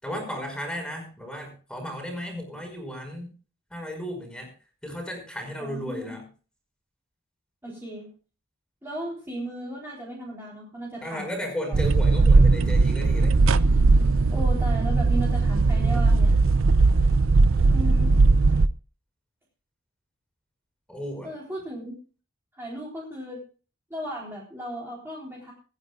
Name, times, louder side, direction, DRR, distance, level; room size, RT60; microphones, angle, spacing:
voice 1, 0.0-3.3 3.7-4.5 4.8-6.2 11.0-13.4 20.9-21.3, equal, 5° left, 3 dB, 5.5 m, -34 dB
voice 2, 5.6-6.1 7.6-8.1 8.8-12.0 14.3-16.4 17.0-17.1 17.7-18.1 21.2-22.0 22.5-23.4 23.9-25.5, equal, 10° right, -5 dB, 4.0 m, -36 dB
sound 1, 11.7-18.7, right 3 dB, 65° right, 0.6 m, -19 dB
24.5 x 9.8 x 2.5 m, 0.37 s
head